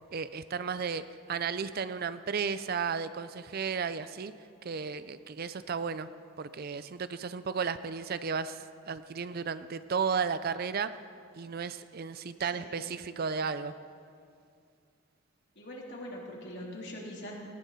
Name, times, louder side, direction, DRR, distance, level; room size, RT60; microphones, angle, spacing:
voice 1, 0.1-1.0 1.3-4.3 4.6-6.1 6.4-10.9 11.3-13.7, right 6 dB, 45° right, 13 dB, 0.4 m, -34 dB
voice 2, 12.5-12.9 15.5-17.4, left 1 dB, 50° left, -3 dB, 3.3 m, -42 dB
18.5 x 18.0 x 4.2 m, 2.3 s
head